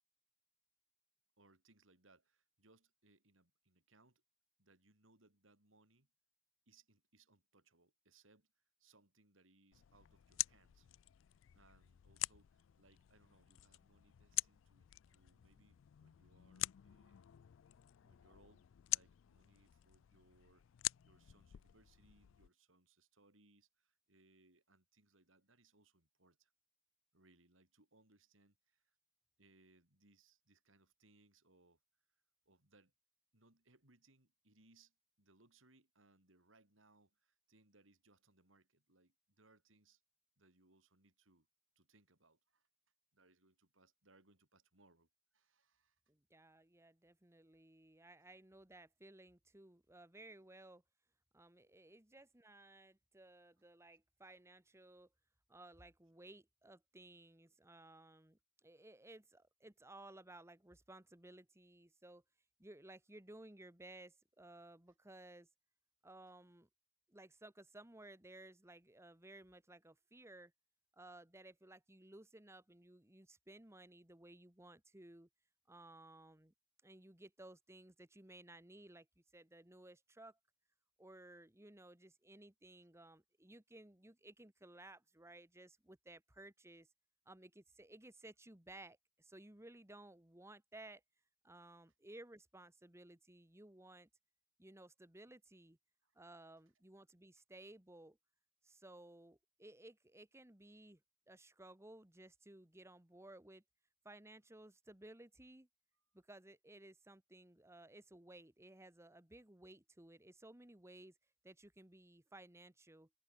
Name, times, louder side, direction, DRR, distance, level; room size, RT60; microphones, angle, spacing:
voice 1, 1.4-4.2 4.6-6.1 6.7-8.5 8.8-10.9 11.5-17.3 18.0-20.6 21.0-26.5 27.1-28.9 29.4-31.8 32.5-32.9 33.3-40.0 40.4-41.5 41.8-42.7 43.1-45.1 45.3-46.0 96.0-96.2, right 2 dB, 90° right, 5.5 m, -71 dB
sound 1, 9.7-22.5, left 18 dB, 75° left, 0.3 m, -46 dB
voice 2, 46.1-50.8 51.3-55.1 55.5-62.2 62.6-65.5 66.0-66.7 67.1-70.5 70.9-75.3 75.7-76.5 76.8-79.1 79.3-80.4 81.0-86.9 87.3-91.0 91.4-94.1 94.6-95.8 96.2-98.2 98.6-101.0 101.3-103.6 104.1-105.7 106.1-111.1 111.4-113.1, right 1 dB, 15° right, 1.6 m, -58 dB
head